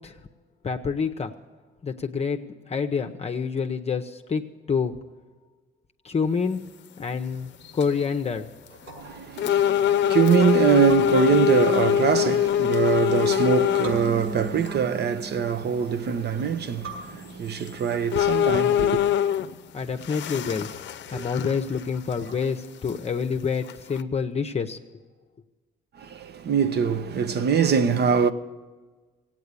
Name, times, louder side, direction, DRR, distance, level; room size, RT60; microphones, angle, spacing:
voice 1, 0.6-1.3 1.8-5.0 6.0-6.6 7.0-8.5 19.7-20.7 21.1-24.8, left 5 dB, 30° left, 0.7 m, -27 dB
sound 1, 7.0-7.1 7.6-8.0 8.7-8.8 9.4-14.0 14.7-14.8 17.1-17.2 17.7-17.8 18.1-19.6 20.0-21.8 22.1-22.2 22.9-23.0 23.7-24.0, left 10 dB, 65° left, 0.6 m, -23 dB
sound 2, 7.0-22.5, right 2 dB, 90° right, 5.6 m, -42 dB
voice 2, 9.0-19.0 26.0-28.3, right 7 dB, 55° right, 0.9 m, -23 dB
16.5 x 8.8 x 8.3 m
cardioid pair, 90°, 20 cm